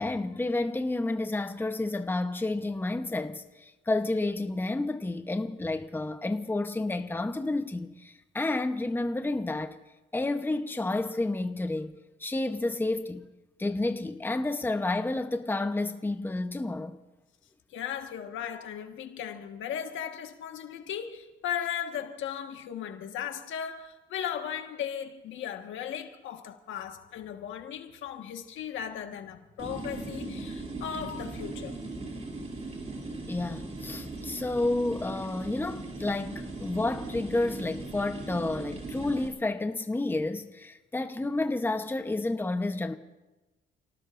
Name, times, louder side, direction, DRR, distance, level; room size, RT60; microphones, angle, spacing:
voice 1, 0.0-9.8 10.1-13.3 13.6-17.0 33.3-42.9, left 2 dB, 10° left, 0.9 m, -30 dB
voice 2, 17.7-31.8, left 9 dB, 75° left, 1.5 m, -37 dB
sound 1, 29.6-39.3, right 2 dB, 35° right, 3.1 m, -39 dB
29.5 x 18.5 x 2.6 m
cardioid pair, 90°, 20 cm